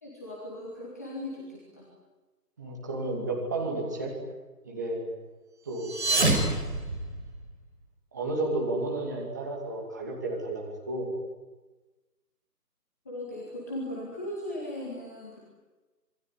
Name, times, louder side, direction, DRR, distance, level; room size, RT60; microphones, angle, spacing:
voice 1, 0.0-1.8 13.1-15.4, left 1 dB, 10° left, -5 dB, 2.0 m, -38 dB
voice 2, 2.6-4.1 4.6-5.0 5.7-5.9 8.1-11.1, right 2 dB, 10° right, -1 dB, 2.4 m, -32 dB
sound 1, 5.7-7.6, right 2 dB, 40° right, 5.7 m, -27 dB
26.5 x 22.0 x 9.9 m, 1.2 s
figure-of-eight pair, 165°, 50 cm